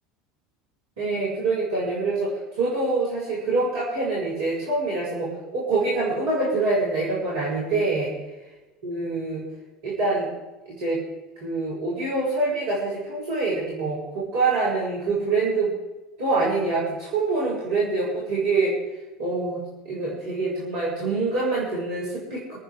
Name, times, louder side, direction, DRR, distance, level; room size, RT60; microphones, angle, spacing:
voice 1, 1.0-8.1 8.8-9.4 9.8-10.3 10.7-11.0 11.4-15.7 16.2-18.8 19.2-19.6 19.8-22.6, right 3 dB, 65° right, -7 dB, 5.9 m, -25 dB
26.5 x 9.4 x 5.0 m, 1.2 s
figure-of-eight pair, 75°, 0 cm